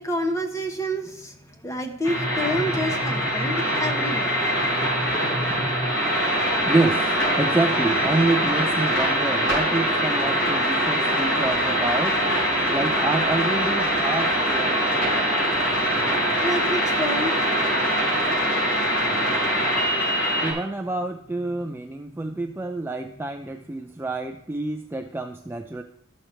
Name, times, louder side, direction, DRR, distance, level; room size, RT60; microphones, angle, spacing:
voice 1, 0.0-5.6 16.2-17.4 17.7-17.8 18.1-18.2 20.1-20.5 22.3-22.4, equal, 15° left, 1.0 m, -30 dB
sound 1, 2.0-20.5, equal, 60° left, 4.6 m, -23 dB
voice 2, 6.6-12.2 12.7-15.1 20.4-25.8, right 2 dB, 10° right, 0.3 m, -27 dB
12.0 x 6.5 x 4.4 m
head